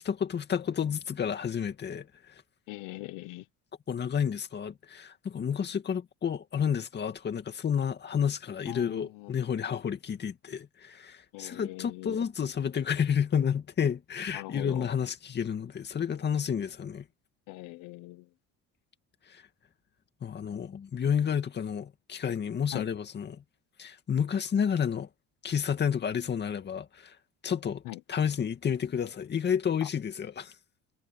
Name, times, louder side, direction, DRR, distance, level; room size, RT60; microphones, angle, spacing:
voice 1, 0.0-2.4 3.9-17.0 19.3-19.4 20.2-23.4 23.8-25.1 25.4-27.2 27.4-27.8 28.1-30.5, left 7 dB, 35° left, 2.4 m, -30 dB
voice 2, 2.7-3.5 8.7-9.3 11.3-12.2 14.3-14.9 17.5-18.3 22.7-22.9 27.8-28.0 29.8-29.9, left 20 dB, 80° left, 1.0 m, -41 dB
cardioid pair, 130°, 32 cm